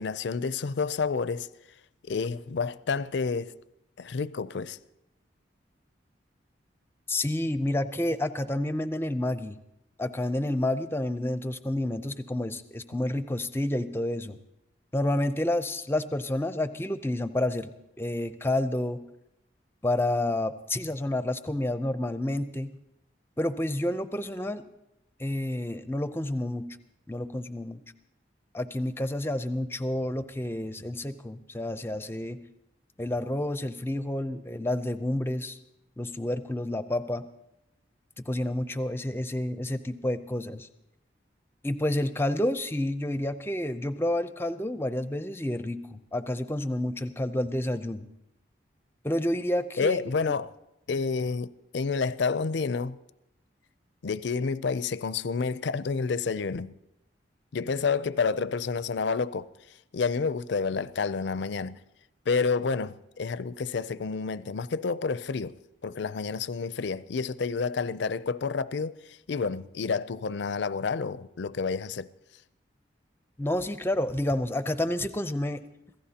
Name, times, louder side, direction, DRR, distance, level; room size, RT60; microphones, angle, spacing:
voice 1, 0.0-1.5 2.1-3.5 4.0-4.8 49.8-50.5 50.9-53.0 54.0-56.7 57.5-59.5 59.9-61.8 62.3-65.5 65.8-72.1, left 5 dB, 70° left, 0.4 m, -29 dB
voice 2, 7.1-9.6 10.0-14.4 14.9-17.7 18.0-19.0 19.8-22.7 23.4-24.6 25.2-26.7 27.1-27.8 28.5-32.4 33.0-35.6 36.0-37.2 38.3-40.7 41.6-48.1 49.0-50.3 73.4-75.6, left 1 dB, 10° left, 0.5 m, -29 dB
26.0 x 17.0 x 2.9 m
head